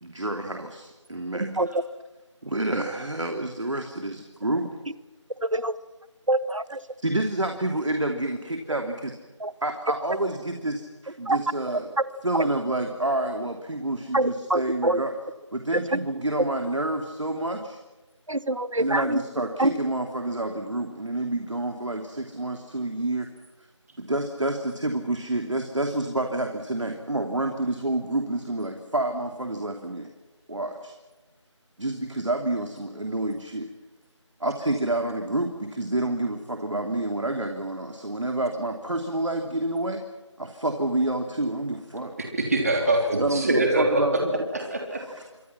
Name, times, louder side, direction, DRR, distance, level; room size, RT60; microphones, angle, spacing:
voice 1, 0.0-1.5 2.4-4.7 7.0-9.1 9.6-11.9 12.2-15.1 15.5-17.8 18.8-23.3 24.0-30.1 30.5-30.9 31.8-33.7 34.4-40.0 40.4-42.1 43.0-44.3 44.9-45.2, right 2 dB, 70° right, 4 dB, 2.9 m, -28 dB
voice 2, 1.3-1.7 5.4-5.7 6.3-6.8 9.4-9.5 11.3-11.4 12.0-12.1 14.1-15.0 15.7-16.0 18.3-19.2 19.6-19.7, right 1 dB, 90° right, 15 dB, 1.4 m, -25 dB
voice 3, 42.2-44.0 44.5-45.0, right 2 dB, 30° right, 2 dB, 3.3 m, -24 dB
27.0 x 25.5 x 6.0 m, 1.1 s
figure-of-eight pair, 175°, 16 cm